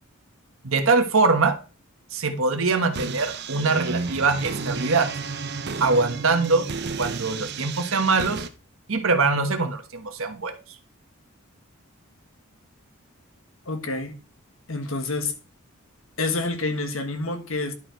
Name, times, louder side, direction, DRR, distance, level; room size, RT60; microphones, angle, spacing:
voice 1, 0.6-1.6 2.1-5.1 5.8-6.6 7.0-8.5 8.9-10.5, right 3 dB, 65° right, 1.2 m, -23 dB
sound 1, 2.9-8.5, right 4 dB, 50° right, 0.8 m, -31 dB
voice 2, 13.6-14.2 14.7-15.3 16.2-17.7, left 3 dB, 65° left, 1.4 m, -28 dB
11.0 x 4.7 x 4.6 m
head